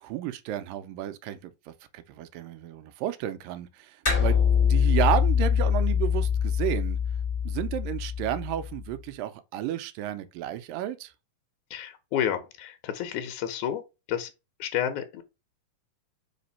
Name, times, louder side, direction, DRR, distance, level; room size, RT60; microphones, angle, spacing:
voice 1, 0.0-7.0 7.4-11.1, right 12 dB, 80° right, 2.4 m, -32 dB
sound 1, 4.1-8.8, left 7 dB, 15° left, 1.7 m, -24 dB
voice 2, 11.7-13.8 14.1-14.3 14.6-15.2, left 9 dB, 70° left, 2.2 m, -30 dB
5.1 x 3.7 x 5.5 m
omnidirectional pair, 4.0 m